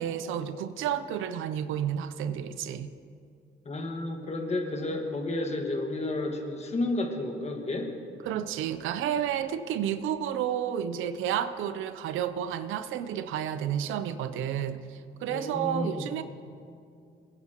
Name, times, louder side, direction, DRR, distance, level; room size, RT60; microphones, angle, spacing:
voice 1, 0.0-2.9 8.2-16.2, right 9 dB, 90° right, 12 dB, 0.6 m, -31 dB
voice 2, 3.6-7.9 15.3-16.1, left 2 dB, 35° left, 3 dB, 1.6 m, -31 dB
20.0 x 9.9 x 2.9 m, 2.4 s
cardioid pair, 90°, 20 cm